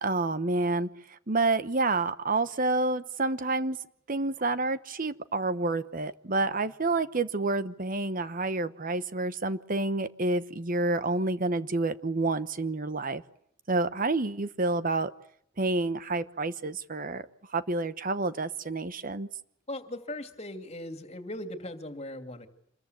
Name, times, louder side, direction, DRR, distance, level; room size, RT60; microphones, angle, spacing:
voice 1, 0.0-3.8 4.1-13.2 13.7-15.1 15.6-17.2 17.5-19.3, right 2 dB, 45° right, 13 dB, 1.0 m, -29 dB
voice 2, 19.7-22.5, left 1 dB, 30° left, 8 dB, 2.8 m, -39 dB
27.5 x 21.5 x 8.2 m, 0.69 s
head